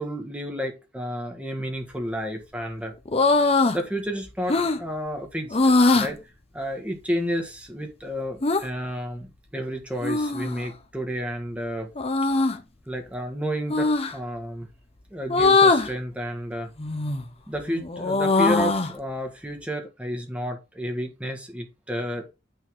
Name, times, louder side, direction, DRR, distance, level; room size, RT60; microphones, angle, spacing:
voice 1, 0.0-2.9 3.7-6.2 6.5-11.9 12.9-14.7 15.1-16.7 17.5-22.3, equal, 5° right, 1.6 m, -31 dB
sound 1, 3.1-3.8 4.5-4.8 5.5-6.1 8.4-8.6 10.0-10.7 12.0-12.6 13.7-14.1 15.3-15.9 16.8-17.3 17.7-18.9, left 3 dB, 30° left, 0.8 m, -21 dB
9.1 x 4.0 x 3.7 m
head